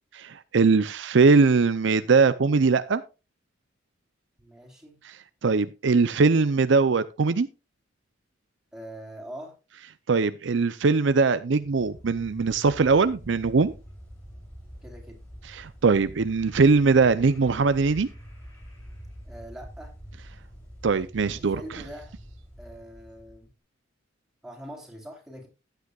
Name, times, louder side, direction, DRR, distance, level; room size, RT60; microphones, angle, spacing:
voice 1, 0.2-3.0 5.0-7.5 10.1-13.7 15.5-18.1 20.8-21.8, right 4 dB, 65° right, 0.5 m, -21 dB
voice 2, 4.4-5.0 8.7-9.6 14.8-15.2 19.3-19.9 21.4-22.1 22.6-23.5 24.4-25.5, right 1 dB, 5° right, 3.5 m, -43 dB
sound 1, 11.6-23.5, equal, 15° left, 6.5 m, -45 dB
14.5 x 9.2 x 2.4 m
head